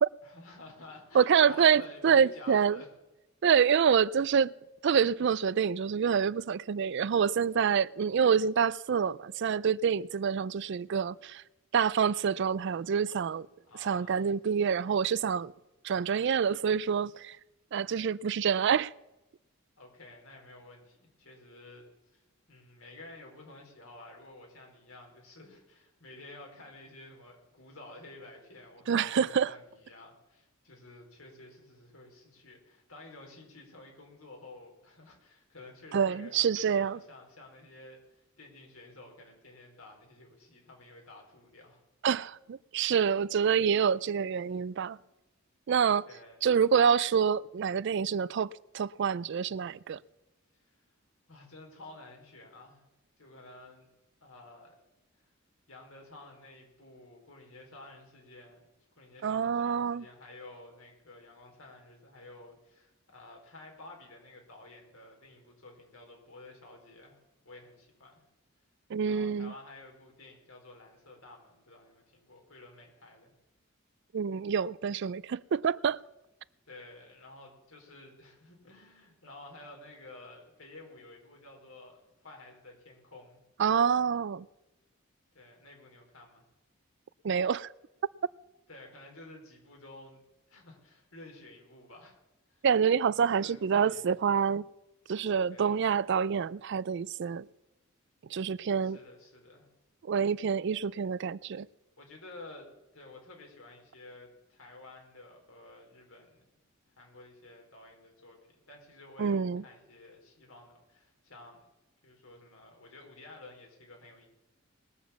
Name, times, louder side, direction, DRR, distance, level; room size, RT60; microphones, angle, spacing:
voice 1, 0.2-2.9 3.8-3.9 13.5-14.2 19.8-21.8 22.1-22.2 22.5-41.8 46.1-46.4 50.6-50.7 51.3-52.8 53.2-53.9 54.2-54.7 55.7-58.6 59.0-68.2 69.0-73.3 76.7-83.4 85.3-86.4 88.7-90.2 90.5-92.2 92.5-92.6 93.2-94.1 95.5-95.8 98.8-99.7 102.0-106.4 107.0-108.4 108.7-111.6 112.0-114.3, left 2 dB, 85° left, 4.4 m, -51 dB
voice 2, 1.1-2.8 3.4-4.5 4.8-11.4 11.7-13.5 13.8-15.5 15.8-17.4 17.7-18.9 28.9-29.5 35.9-37.0 42.0-45.0 45.7-46.1 46.4-48.5 48.7-50.0 59.2-60.0 68.9-69.5 74.1-76.0 83.6-84.5 87.2-87.7 92.6-94.7 95.1-97.5 98.3-99.0 100.0-101.7 109.2-109.6, right 7 dB, 55° right, 0.4 m, -27 dB
20.0 x 7.2 x 7.2 m
head